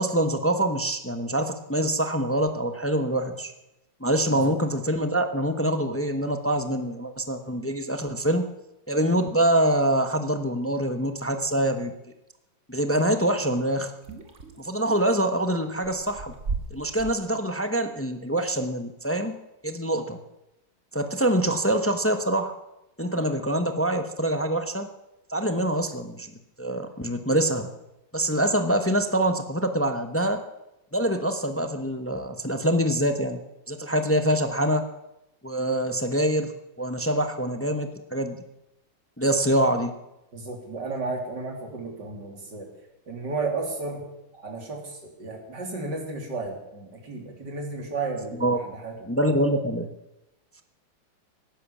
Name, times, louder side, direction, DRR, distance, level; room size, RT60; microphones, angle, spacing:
voice 1, 0.0-3.5 4.0-8.5 8.9-11.9 12.7-13.9 14.6-16.3 16.7-19.4 19.6-20.2 20.9-22.5 23.0-24.9 25.3-26.3 26.6-27.7 28.1-30.4 30.9-33.4 33.7-34.9 35.4-36.5 36.8-38.4 39.2-39.9 48.4-48.6 49.1-49.9, right 1 dB, 15° left, 7 dB, 0.4 m, -25 dB
sound 1, 14.0-15.1 15.7-17.1, right 4 dB, 40° right, 1.8 m, -34 dB
voice 2, 40.3-42.7 43.1-44.0 44.4-49.1, right 3 dB, 60° right, 1 dB, 3.7 m, -33 dB
17.5 x 10.5 x 7.3 m, 0.91 s
omnidirectional pair, 2.1 m